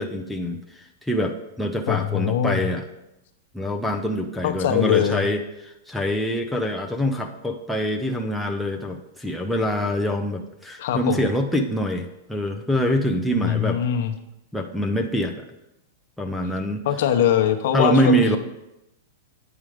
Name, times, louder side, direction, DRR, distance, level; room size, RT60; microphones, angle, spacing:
voice 1, 0.0-2.8 3.5-13.8 14.5-15.4 16.2-16.8 17.7-18.4, equal, ahead, 0 dB, 0.5 m, -25 dB
voice 2, 1.9-2.7 4.4-5.3 10.8-11.3 13.3-14.1 16.8-18.4, left 10 dB, 60° left, 5 dB, 0.8 m, -22 dB
9.0 x 4.9 x 4.9 m, 0.90 s
supercardioid pair, 155°, 0 cm